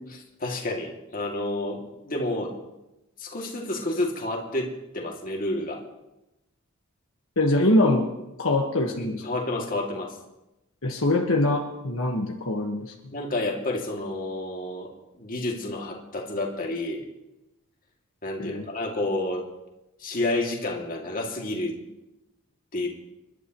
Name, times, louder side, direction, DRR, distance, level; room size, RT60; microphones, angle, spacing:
voice 1, 0.4-2.5 3.2-5.8 9.0-10.2 13.1-14.9 15.2-17.0 18.2-19.4 20.0-21.8 22.7-22.9, left 2 dB, 40° left, -1 dB, 2.5 m, -30 dB
voice 2, 7.4-8.1 8.4-9.2 10.8-12.9 18.4-18.6, left 1 dB, 70° left, 1 dB, 1.5 m, -23 dB
28.0 x 12.0 x 3.1 m, 0.96 s
head